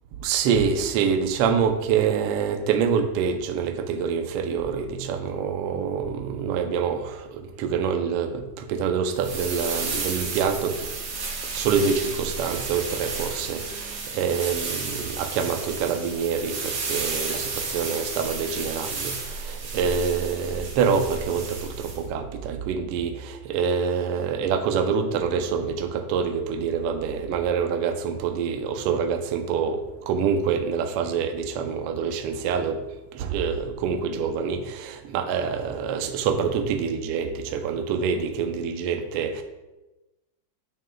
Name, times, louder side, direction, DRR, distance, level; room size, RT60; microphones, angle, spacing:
voice 1, 0.2-10.9 11.5-32.8 33.1-39.4, right 6 dB, 75° right, 6 dB, 1.4 m, -26 dB
sound 1, 9.2-22.0, right 4 dB, 55° right, 2.2 m, -32 dB
9.2 x 9.2 x 2.3 m, 1.1 s
omnidirectional pair, 3.4 m